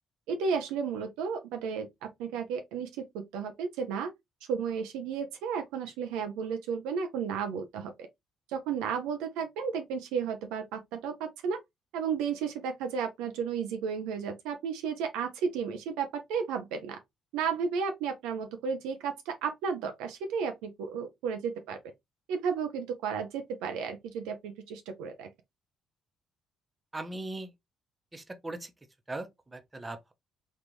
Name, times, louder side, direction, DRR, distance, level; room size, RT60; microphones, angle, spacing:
voice 1, 0.3-4.1 4.5-7.9 8.5-11.6 11.9-17.0 17.3-21.8 22.3-25.3, right 6 dB, 75° right, 0.5 m, -33 dB
voice 2, 26.9-27.5 28.1-28.7 29.1-30.1, right 2 dB, 20° right, 0.8 m, -39 dB
3.6 x 2.4 x 3.0 m
hypercardioid pair, 45°, 0 cm